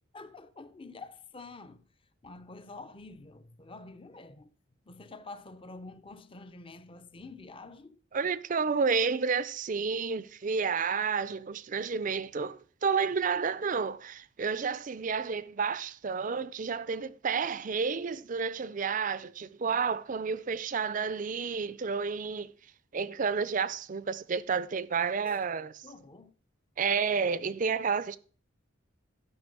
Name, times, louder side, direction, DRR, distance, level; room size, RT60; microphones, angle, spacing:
voice 1, 0.1-1.9 2.2-4.5 4.9-8.0 25.2-25.5 25.8-26.3, left 3 dB, 25° left, 0.6 m, -47 dB
voice 2, 8.1-22.5 22.9-25.8 26.8-28.2, right 5 dB, 40° right, 0.4 m, -30 dB
12.5 x 5.3 x 5.3 m
head